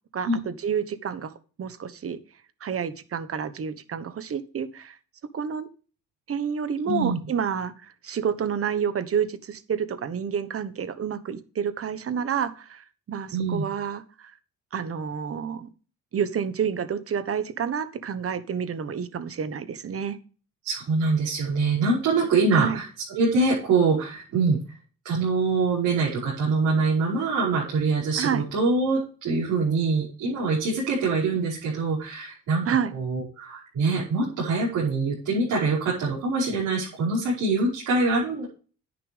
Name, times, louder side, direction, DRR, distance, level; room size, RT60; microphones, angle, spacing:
voice 1, 0.1-1.3 1.6-2.2 2.6-5.0 5.3-5.7 6.3-14.3 14.7-15.7 16.1-20.2 22.5-22.8 28.2-28.4 32.6-32.9, right 7 dB, 50° right, 13 dB, 1.3 m, -29 dB
voice 2, 6.8-7.2 13.3-13.6 20.6-24.6 25.0-38.4, right 3 dB, 80° right, -6 dB, 5.5 m, -24 dB
10.0 x 9.9 x 3.5 m, 0.38 s
cardioid pair, 90°, 30 cm